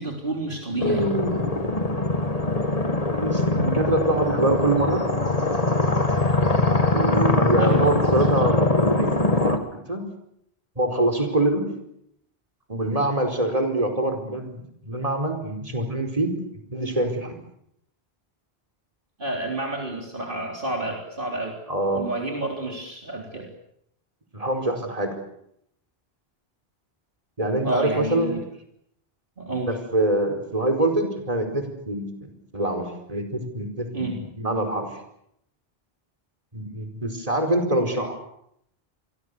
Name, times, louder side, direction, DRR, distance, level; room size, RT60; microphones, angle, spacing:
voice 1, 0.0-1.1 7.5-8.0 19.2-21.6 21.9-23.5 27.6-28.4 29.4-29.8 33.9-34.2, right 2 dB, 60° right, 1 dB, 3.8 m, -29 dB
sound 1, 0.8-9.6, left 2 dB, 35° left, 2.2 m, -22 dB
voice 2, 0.8-1.5 2.4-2.7 3.2-5.0 6.9-10.0 10.8-11.6 12.7-16.3 16.7-17.4 21.7-22.0 24.3-25.1 27.4-28.4 29.6-34.9 36.5-38.2, right 1 dB, 35° right, 4 dB, 4.9 m, -25 dB
29.0 x 23.5 x 6.8 m, 0.75 s
omnidirectional pair, 1.0 m